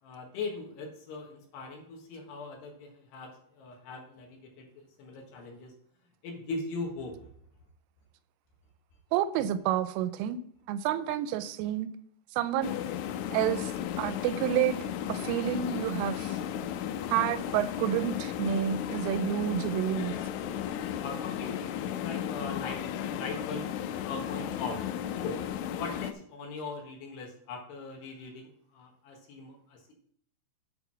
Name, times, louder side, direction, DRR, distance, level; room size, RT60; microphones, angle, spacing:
voice 1, 0.0-5.7 6.2-7.3 21.0-23.7 24.0-24.8 25.1-30.0, left 3 dB, 65° left, 1 dB, 3.2 m, -40 dB
voice 2, 9.1-10.4 10.7-11.9 12.4-12.7 13.3-13.7 14.0-14.8 15.1-16.4 17.1-20.1, right 11 dB, 85° right, 12 dB, 3.2 m, -29 dB
sound 1, 12.6-26.1, left 10 dB, 85° left, 3.1 m, -35 dB
8.0 x 6.9 x 6.0 m, 0.65 s
omnidirectional pair, 5.7 m